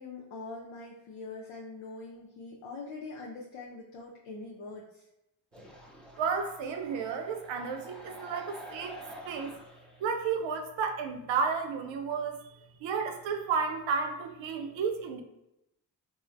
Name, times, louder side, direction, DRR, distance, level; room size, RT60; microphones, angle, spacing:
voice 1, 0.0-5.0, left 3 dB, 80° left, -3 dB, 0.6 m, -43 dB
sound 1, 5.5-10.2, equal, ahead, 0.6 m, -48 dB
voice 2, 6.2-9.0 9.3-9.5 10.0-12.4 12.8-15.2, right 5 dB, 75° right, 5 dB, 0.5 m, -32 dB
3.1 x 2.0 x 2.4 m, 0.87 s
supercardioid pair, 40°, 46 cm